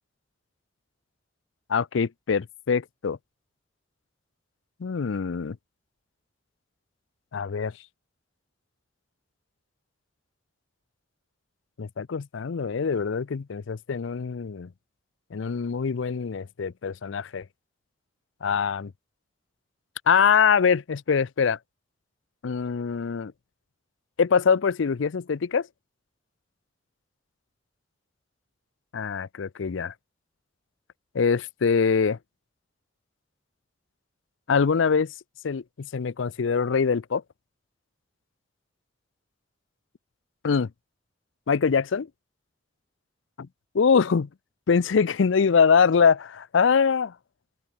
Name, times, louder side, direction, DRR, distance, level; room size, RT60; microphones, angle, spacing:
voice 1, 1.7-3.2 4.8-5.6 7.3-7.7 11.8-14.7 15.3-17.4 18.4-18.9 20.1-21.6 22.4-23.3 24.2-25.7 28.9-29.9 31.1-32.2 34.5-35.1 35.4-37.2 40.4-40.7 41.5-42.1 43.4-43.5 43.7-44.3 44.7-47.1, left 6 dB, 75° left, 0.5 m, -23 dB
open air
head